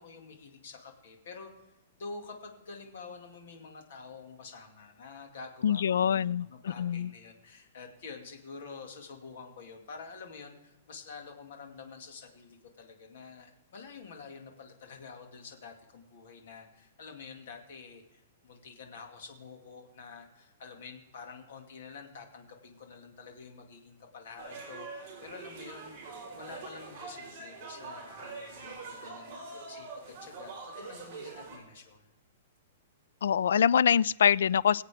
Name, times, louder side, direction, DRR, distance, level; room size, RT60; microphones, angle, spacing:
voice 1, 0.0-26.0 26.3-32.1, left 4 dB, 55° left, 2.2 m, -48 dB
voice 2, 5.6-6.5 6.8-7.1 33.2-34.8, left 8 dB, 85° left, 0.3 m, -24 dB
sound 1, 24.4-31.6, right 4 dB, 20° right, 4.0 m, -44 dB
23.0 x 8.1 x 3.5 m
hypercardioid pair, 175°, 0 cm